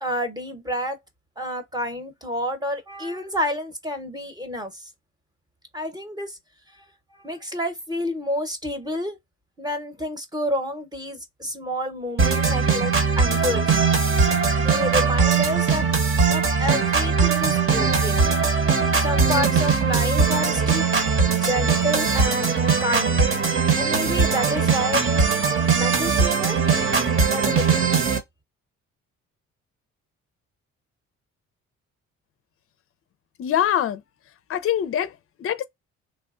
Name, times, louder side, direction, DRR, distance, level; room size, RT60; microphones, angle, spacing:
voice 1, 0.0-1.0 1.4-4.9 5.7-6.4 6.7-6.9 7.1-9.2 9.6-13.8 14.6-18.4 19.0-22.5 22.8-23.3 23.7-25.2 25.7-26.9 27.2-27.9, equal, 15° right, 0.9 m, -29 dB
sound 1, 12.2-28.2, right 5 dB, 45° right, 1.0 m, -20 dB
voice 2, 33.4-34.0 34.5-35.1 35.4-35.7, left 10 dB, 50° left, 0.5 m, -23 dB
3.3 x 2.1 x 2.5 m
cardioid pair, 90°, 30 cm